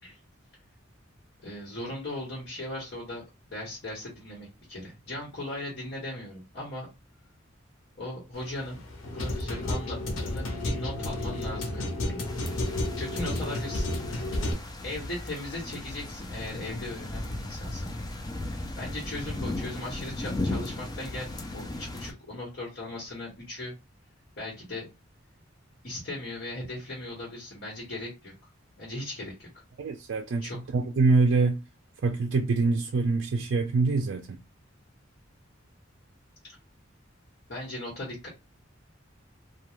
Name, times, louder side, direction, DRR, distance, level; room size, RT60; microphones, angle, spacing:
voice 1, 1.4-3.2 3.5-6.9 8.0-8.8 9.1-12.3 13.0-13.9 14.8-17.9 18.3-23.7 24.4-24.9 25.8-28.3 28.8-29.6 30.4-30.6 36.4-36.6 37.5-38.3, left 1 dB, 55° left, 1.1 m, -38 dB
sound 1, 8.3-14.5, left 1 dB, 90° left, 0.7 m, -31 dB
sound 2, 12.3-22.1, left 2 dB, 20° left, 0.4 m, -36 dB
voice 2, 29.8-30.5 30.7-31.6 32.0-34.4, right 3 dB, 60° right, 0.4 m, -24 dB
2.4 x 2.2 x 3.0 m
head